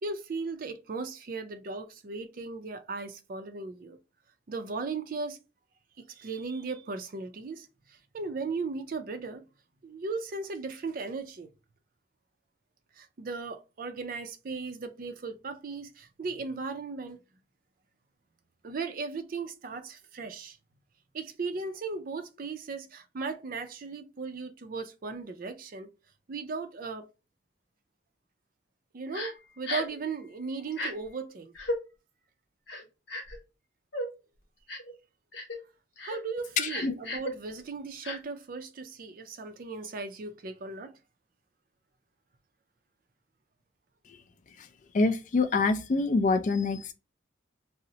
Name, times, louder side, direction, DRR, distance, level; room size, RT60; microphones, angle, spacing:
voice 1, 0.0-4.0 4.5-5.4 6.1-9.4 9.8-11.5 13.0-17.2 18.6-20.6 21.1-25.9 26.3-27.1 28.9-31.5 36.0-40.9, right 4 dB, 50° right, 0.4 m, -37 dB
Crying sobbing, 29.1-29.3 29.7-30.0 30.7-30.9 31.6-31.8 32.7-33.4 33.9-34.1 34.7-34.9 35.3-35.6 36.0-36.2 36.7-37.3 38.0-38.2, left 1 dB, 65° left, 0.9 m, -34 dB
voice 2, 36.6-36.9 44.6-44.7 44.9-46.9, left 3 dB, 40° left, 0.3 m, -26 dB
2.7 x 2.0 x 3.8 m
head